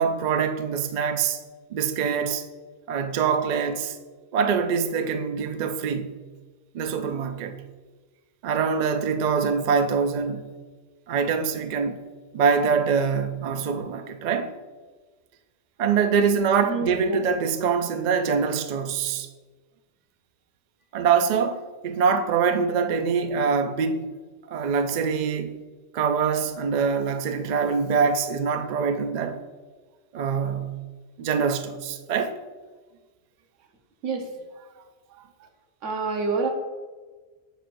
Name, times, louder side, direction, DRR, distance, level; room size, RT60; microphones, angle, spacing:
voice 1, 0.0-1.4 1.7-2.5 2.9-4.0 4.3-6.2 6.7-7.5 8.4-10.5 11.1-12.0 12.3-14.5 15.8-19.3 20.9-24.1 24.5-25.6 25.9-29.4 30.1-30.8 31.2-32.4, right 6 dB, 60° right, 0.4 m, -24 dB
voice 2, 16.7-17.2 34.0-34.3 35.8-36.5, right 4 dB, 85° right, 1.3 m, -27 dB
7.2 x 6.1 x 2.5 m
omnidirectional pair, 1.2 m